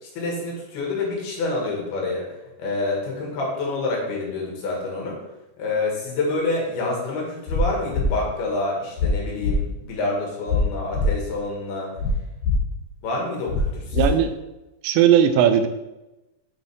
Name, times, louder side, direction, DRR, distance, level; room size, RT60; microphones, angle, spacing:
voice 1, 0.0-2.3 2.6-5.2 5.6-11.9 13.0-14.2, left 2 dB, 70° left, -2 dB, 3.6 m, -27 dB
sound 1, 7.5-7.6 7.9-8.1 9.0-9.1 9.4-9.6 10.5-10.6 10.9-11.1 12.0-12.1 12.4-12.6 13.5-13.6 13.9-14.1, left 5 dB, 45° left, 3.1 m, -22 dB
voice 2, 13.9-14.3 14.8-15.7, right 9 dB, 90° right, 9 dB, 3.0 m, -17 dB
8.4 x 7.2 x 3.6 m, 0.99 s
omnidirectional pair, 5.0 m